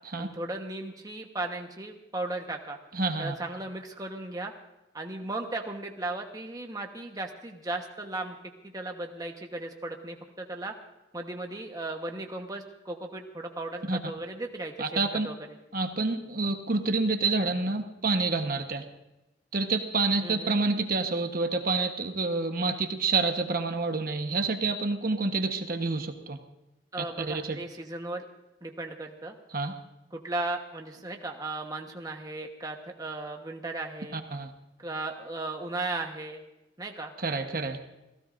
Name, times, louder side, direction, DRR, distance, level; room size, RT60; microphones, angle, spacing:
voice 1, 0.2-2.8 3.2-4.5 4.9-8.4 8.6-10.7 11.1-15.3 20.2-20.6 26.9-28.2 28.6-29.3 30.1-34.2 34.8-36.4 36.8-37.1, right 2 dB, 20° right, 2 dB, 1.1 m, -36 dB
voice 2, 2.9-3.3 13.9-14.0 14.8-15.3 15.7-18.8 19.5-26.4 27.2-27.6 29.5-29.8 34.1-34.5 37.2-37.8, right 3 dB, 50° right, 5 dB, 1.1 m, -28 dB
30.0 x 16.0 x 2.6 m, 0.97 s
head